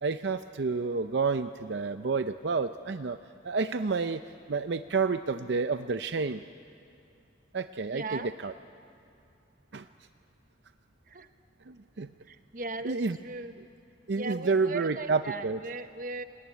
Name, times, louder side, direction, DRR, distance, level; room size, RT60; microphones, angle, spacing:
voice 1, 0.0-3.2 3.4-4.2 4.5-6.4 7.5-8.5 9.7-9.9 11.7-12.1 12.8-13.2 14.1-15.6, right 4 dB, 75° right, 10 dB, 0.6 m, -29 dB
voice 2, 7.9-8.3 11.1-11.3 12.3-13.5 14.1-16.2, right 3 dB, 50° right, 9 dB, 1.0 m, -38 dB
28.0 x 18.5 x 9.7 m, 2.5 s
head